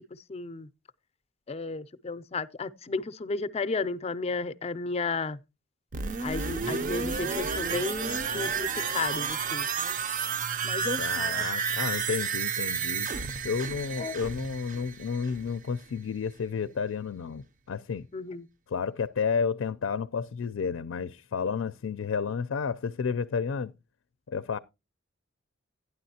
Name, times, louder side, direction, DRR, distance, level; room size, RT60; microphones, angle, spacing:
voice 1, 0.3-0.7 1.5-5.4 6.2-10.0 10.6-11.5 14.0-14.2 18.1-18.5, left 3 dB, 30° left, 0.4 m, -33 dB
sound 1, 5.9-15.6 16.0-16.1, right 6 dB, 40° right, 0.5 m, -31 dB
voice 2, 11.0-13.1 13.4-18.1 18.7-23.7 24.3-24.6, left 6 dB, 90° left, 0.4 m, -31 dB
12.0 x 9.7 x 2.8 m
head